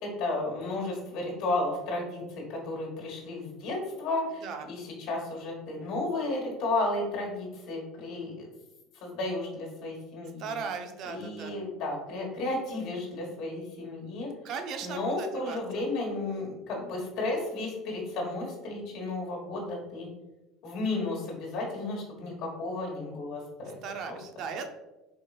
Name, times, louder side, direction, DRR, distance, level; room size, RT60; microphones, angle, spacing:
voice 1, 0.0-8.5 9.0-10.5 11.0-14.3 14.8-20.1 20.6-23.8 24.1-24.2, left 2 dB, 65° left, -1 dB, 1.3 m, -33 dB
voice 2, 10.4-11.5 14.4-15.6 23.8-24.7, right 5 dB, 60° right, 6 dB, 0.5 m, -37 dB
4.3 x 2.9 x 2.3 m, 1.0 s
supercardioid pair, 90°, 0 cm